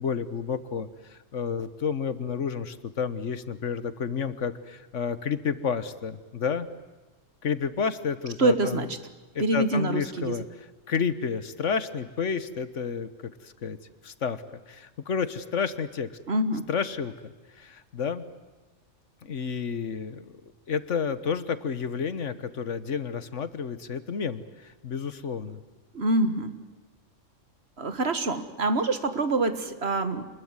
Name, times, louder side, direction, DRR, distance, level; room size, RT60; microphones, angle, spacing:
voice 1, 0.0-6.7 7.4-8.8 9.3-10.4 10.9-13.1 13.4-13.8 14.0-16.1 16.7-17.3 17.6-18.2 19.2-20.4 20.7-25.6, left 6 dB, 70° left, 14 dB, 1.6 m, -30 dB
voice 2, 8.4-8.9 9.4-10.4 16.3-16.7 25.9-26.5 27.8-30.3, right 2 dB, 55° right, 11 dB, 1.8 m, -25 dB
27.0 x 20.5 x 9.7 m, 1.2 s
omnidirectional pair, 1.3 m